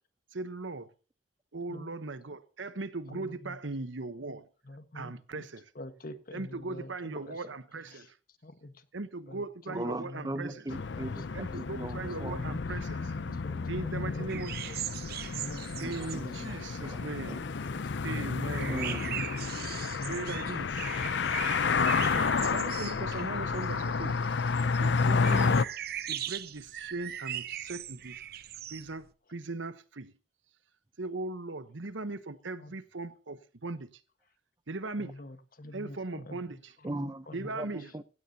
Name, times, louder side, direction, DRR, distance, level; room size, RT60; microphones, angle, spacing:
voice 1, 0.3-0.9 1.5-4.5 4.9-5.6 6.3-8.2 8.9-10.5 11.3-13.1 13.7-15.1 15.8-17.4 18.0-19.0 20.1-21.0 22.0-24.2 24.8-25.6 26.1-28.1 28.7-30.1 31.0-34.0 34.7-35.1 35.7-36.7 37.3-37.9, right 3 dB, 80° right, 1.1 m, -39 dB
voice 2, 3.1-3.6 4.6-5.5 5.7-7.5 7.9-8.9 9.3-11.2 11.7-12.5 13.1-16.5 16.8-17.0 17.3-19.0 19.8-20.3 32.6-32.7 34.9-36.4 36.8-37.7, left 1 dB, 50° left, 1.5 m, -47 dB
voice 3, 9.7-11.2 11.5-12.6 13.0-13.7 14.3-14.7 15.8-17.4 18.7-19.7 36.8-38.0, right 1 dB, 20° right, 0.6 m, -40 dB
sound 1, 10.7-25.6, left 5 dB, 65° left, 0.5 m, -31 dB
sound 2, 14.3-17.5 17.8-29.0, right 11 dB, 55° right, 0.8 m, -40 dB
16.5 x 16.5 x 2.9 m
head